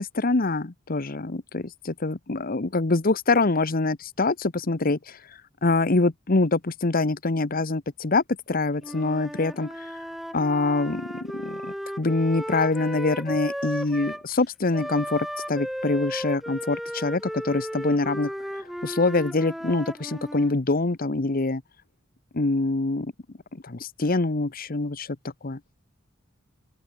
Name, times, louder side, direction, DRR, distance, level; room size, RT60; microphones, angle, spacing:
voice 1, 0.0-5.2 5.6-10.0 10.3-11.1 11.3-21.6 22.3-23.1 23.6-25.2 25.4-25.6, left 3 dB, 45° left, 1.0 m, -25 dB
Wind instrument woodwind instrument, 8.8-14.2 14.7-20.6, equal, ahead, 4.1 m, -35 dB
open air
head